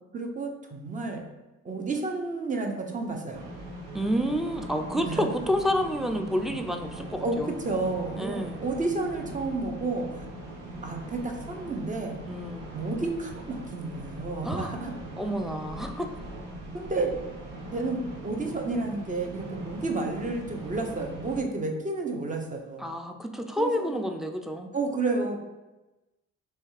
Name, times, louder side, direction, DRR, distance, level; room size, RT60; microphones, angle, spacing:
voice 1, 0.1-1.2 1.6-3.5 4.9-5.3 7.2-10.2 10.8-12.2 12.7-14.9 16.7-17.1 17.7-22.8 23.6-24.0 24.7-25.4, right 3 dB, 25° right, 3 dB, 0.8 m, -31 dB
sound 1, 3.3-21.4, right 1 dB, 85° right, 0.9 m, -41 dB
voice 2, 3.9-7.5 8.2-8.6 12.3-12.7 14.4-14.7 15.2-16.1 22.8-24.7, equal, ahead, 5 dB, 0.4 m, -29 dB
3.3 x 3.3 x 4.7 m, 1.1 s
cardioid pair, 90°, 30 cm